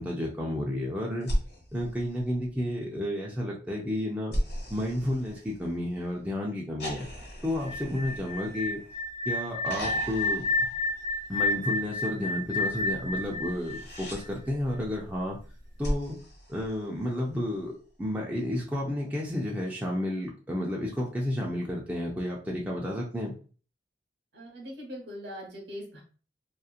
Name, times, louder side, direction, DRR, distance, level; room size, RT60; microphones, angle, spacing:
voice 1, 0.0-1.3 1.7-4.4 4.7-7.1 7.4-8.8 9.3-10.5 11.3-15.4 15.8-16.2 16.5-17.7 18.0-23.4, left 1 dB, 10° right, -3 dB, 0.4 m, -31 dB
sound 1, 1.2-2.8 4.3-6.0 6.8-9.1 9.6-11.5 13.4-14.2 15.8-17.3 18.8-18.9, equal, 70° left, 1.2 m, -36 dB
sound 2, 7.6-14.5, left 2 dB, 50° right, 0.8 m, -31 dB
voice 2, 24.3-26.0, equal, 70° right, 0 dB, 1.1 m, -41 dB
3.0 x 2.4 x 2.4 m, 0.39 s
head